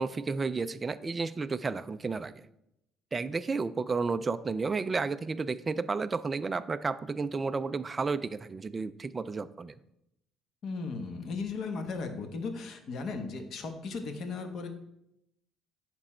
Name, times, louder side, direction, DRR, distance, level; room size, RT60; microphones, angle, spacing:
voice 1, 0.0-2.5 3.1-9.8, right 4 dB, 15° right, 12 dB, 0.3 m, -32 dB
voice 2, 10.6-14.7, left 4 dB, 40° left, 6 dB, 1.1 m, -36 dB
10.5 x 6.1 x 4.3 m, 0.81 s
cardioid pair, 175°, 0 cm